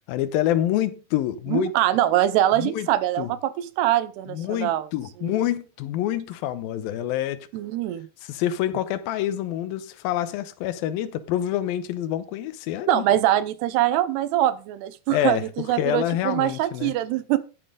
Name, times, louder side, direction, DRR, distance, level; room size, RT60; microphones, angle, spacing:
voice 1, 0.1-1.7 2.5-2.9 3.2-3.3 4.3-7.5 8.2-13.0 15.1-16.9, left 12 dB, 75° left, 2.3 m, -27 dB
voice 2, 1.5-4.9 5.2-5.4 7.5-8.1 12.9-17.4, right 13 dB, 75° right, 2.8 m, -23 dB
13.5 x 9.2 x 3.9 m
omnidirectional pair, 5.0 m